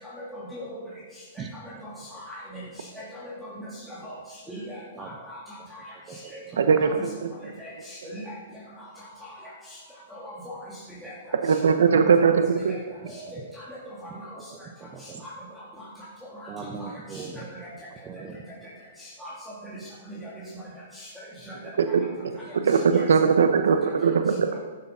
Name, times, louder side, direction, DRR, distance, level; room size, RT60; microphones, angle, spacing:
voice 1, 0.0-0.8 1.8-2.6 3.0-4.2 4.5-5.4 5.7-5.8 6.8-6.9 7.6-8.3 10.1-10.6 11.0-11.1 12.2-12.3 12.7-12.8 13.1-13.2 13.7-14.0 15.2-15.3 16.8-17.3 17.5-17.6 19.0-19.3 19.6-19.7 20.1-20.3 21.0-21.1 21.5-21.6 22.9-23.1 24.5-24.6, equal, ahead, -8 dB, 2.2 m, -40 dB
voice 2, 6.6-6.9 11.4-12.7 21.8-22.1 22.6-24.3, right 6 dB, 85° right, 8 dB, 0.7 m, -20 dB
voice 3, 14.8-15.2 16.5-17.4 18.0-18.4, right 5 dB, 20° right, 5 dB, 0.9 m, -39 dB
11.5 x 6.8 x 5.5 m, 1.4 s
hypercardioid pair, 150°, 0 cm